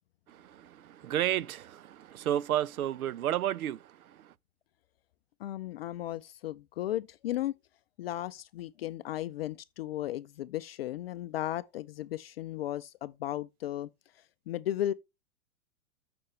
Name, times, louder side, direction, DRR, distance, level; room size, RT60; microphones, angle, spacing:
voice 1, 0.3-4.3, right 11 dB, 75° right, 0.6 m, -32 dB
voice 2, 5.4-7.5 8.0-13.9 14.5-14.9, left 13 dB, 45° left, 0.5 m, -35 dB
13.5 x 6.0 x 3.2 m
hypercardioid pair, 115°, 43 cm